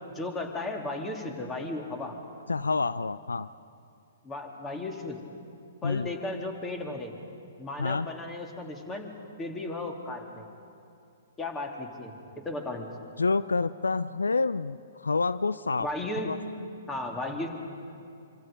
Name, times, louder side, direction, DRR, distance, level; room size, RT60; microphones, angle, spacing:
voice 1, 0.1-2.2 4.2-5.2 5.8-7.2 7.6-9.1 9.4-10.5 11.4-12.1 12.4-12.9 15.8-16.4 16.9-17.5, left 2 dB, 15° left, 3 dB, 2.7 m, -35 dB
voice 2, 2.5-3.5 5.8-6.1 7.8-8.1 13.2-15.9 16.2-16.4, left 4 dB, 80° left, 16 dB, 0.4 m, -28 dB
26.0 x 25.0 x 5.3 m, 2.5 s
figure-of-eight pair, 120°, 0 cm